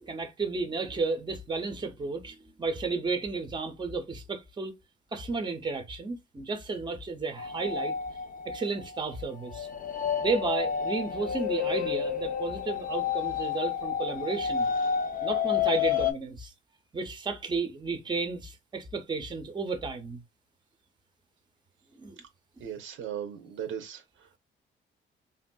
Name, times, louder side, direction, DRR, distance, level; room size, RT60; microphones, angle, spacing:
voice 1, 0.0-4.7 5.1-7.9 8.4-9.7 10.2-14.7 15.2-16.5 16.9-20.2 22.0-22.2, right 4 dB, 25° right, 0.6 m, -33 dB
sound 1, 7.4-16.1, left 7 dB, 45° left, 0.5 m, -30 dB
voice 2, 22.6-24.0, right 9 dB, 80° right, 0.7 m, -37 dB
3.5 x 2.5 x 2.2 m
cardioid pair, 90°, 20 cm